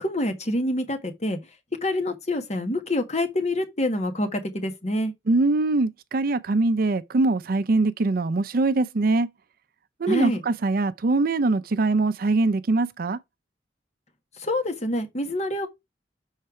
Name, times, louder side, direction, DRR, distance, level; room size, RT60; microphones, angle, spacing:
voice 1, 0.0-1.4 1.8-5.1 10.1-10.4 14.4-15.7, left 1 dB, 40° left, 1.3 m, -26 dB
voice 2, 5.3-9.3 10.0-13.2, right 3 dB, 55° right, 0.5 m, -22 dB
6.5 x 4.4 x 4.7 m
head